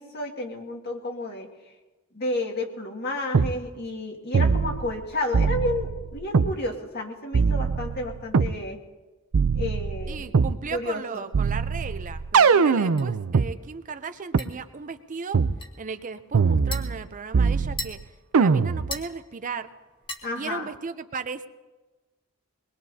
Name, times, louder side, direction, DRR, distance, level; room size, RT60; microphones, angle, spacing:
voice 1, 0.0-1.5 2.1-8.8 9.5-10.3 10.7-11.2 20.2-20.7, left 2 dB, 50° left, 1 dB, 2.0 m, -31 dB
sound 1, 3.3-3.5 4.3-5.0 5.3-6.5 7.3-8.6 9.3-10.6 11.3-13.5 14.3-14.4 15.3-15.6 16.3-17.0 17.3-18.0 18.3-19.0, right 5 dB, 90° right, 0.5 m, -22 dB
voice 2, 10.1-15.4 15.8-18.0 18.4-19.7 20.4-21.5, right 5 dB, 40° right, 10 dB, 0.5 m, -36 dB
sound 2, 11.1-20.9, left 2 dB, 25° left, 1.4 m, -44 dB
22.5 x 21.0 x 2.8 m, 1.2 s
head